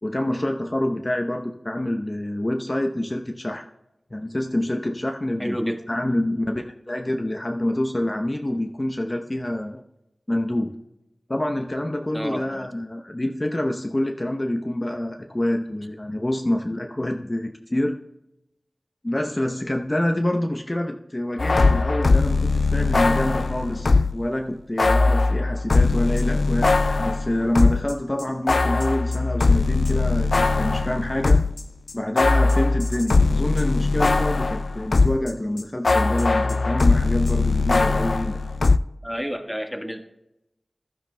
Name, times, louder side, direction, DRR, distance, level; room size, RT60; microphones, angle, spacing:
voice 1, 0.0-3.6 4.1-9.8 10.3-10.8 11.3-18.0 19.0-26.7 27.0-31.4 31.9-38.4, left 1 dB, 30° left, 3 dB, 0.7 m, -26 dB
voice 2, 5.4-5.8 12.1-12.7 39.0-40.0, equal, ahead, 4 dB, 1.4 m, -30 dB
sound 1, 21.4-24.2 24.8-27.9 28.2-35.3 35.6-38.8, left 3 dB, 70° left, 0.3 m, -20 dB
15.5 x 12.0 x 2.2 m, 0.90 s
cardioid pair, 40°, 0 cm